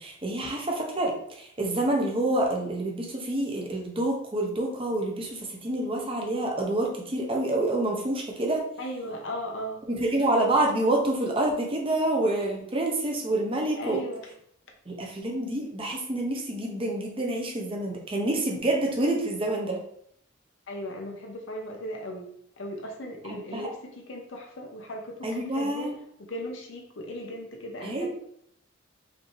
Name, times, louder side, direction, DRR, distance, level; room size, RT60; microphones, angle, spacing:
voice 1, 0.0-8.6 9.9-14.0 14.9-19.8 23.3-23.7 25.2-25.9 27.8-28.1, right 1 dB, 25° right, 0 dB, 0.8 m, -27 dB
voice 2, 8.8-9.9 13.8-14.3 20.7-25.9 26.2-28.1, equal, 65° left, 1 dB, 0.7 m, -37 dB
5.1 x 2.8 x 3.1 m, 0.68 s
head